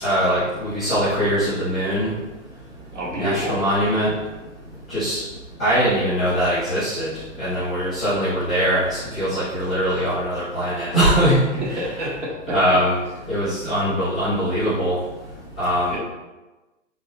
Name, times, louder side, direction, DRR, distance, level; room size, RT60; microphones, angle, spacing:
voice 1, 0.0-2.1 3.2-4.1 4.9-5.2 5.6-7.1 7.4-11.3 12.5-12.9 13.3-15.0 15.6-16.0, equal, 5° left, -18 dB, 0.3 m, -21 dB
voice 2, 2.9-3.6 11.6-12.8 15.9-16.0, equal, 70° right, -5 dB, 1.3 m, -28 dB
3.9 x 2.2 x 3.1 m, 1.1 s
figure-of-eight pair, 120°, 38 cm